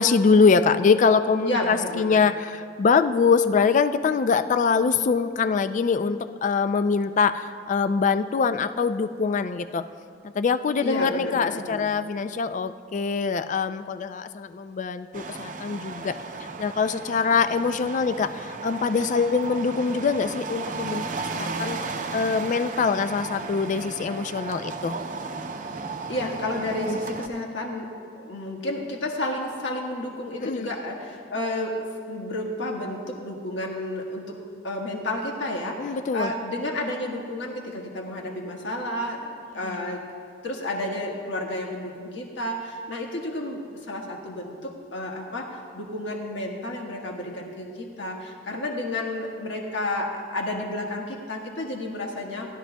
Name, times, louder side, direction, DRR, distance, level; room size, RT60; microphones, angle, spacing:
voice 1, 0.0-9.9 10.3-16.2 16.6-21.0 21.3-21.8 22.1-25.0 26.9-27.0 30.4-30.7 35.8-36.3 39.6-39.8, left 5 dB, 45° left, 11 dB, 0.3 m, -23 dB
voice 2, 1.4-2.2 10.8-11.9 26.1-27.9 28.2-34.4 34.6-39.2 39.5-40.0 40.4-45.5 45.7-52.5, left 1 dB, 80° left, 0 dB, 1.4 m, -31 dB
sound 1, 15.1-27.3, right 4 dB, 45° right, 0.6 m, -35 dB
18.5 x 12.0 x 2.2 m, 2.2 s
head